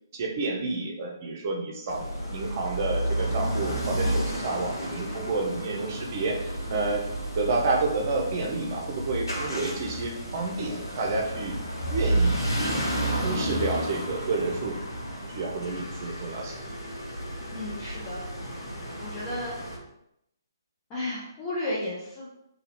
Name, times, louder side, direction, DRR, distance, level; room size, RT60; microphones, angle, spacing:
voice 1, 0.1-7.0 7.3-11.6 11.9-12.8 13.1-14.7 15.2-16.6, right 3 dB, 40° right, 1 dB, 0.8 m, -30 dB
sound 1, 1.9-19.8, right 1 dB, 70° left, 1.2 m, -31 dB
voice 2, 17.5-18.2 19.0-19.5 20.9-22.3, left 1 dB, 20° left, -8 dB, 0.9 m, -33 dB
2.8 x 2.7 x 4.3 m, 0.80 s
figure-of-eight pair, 135°, 2 cm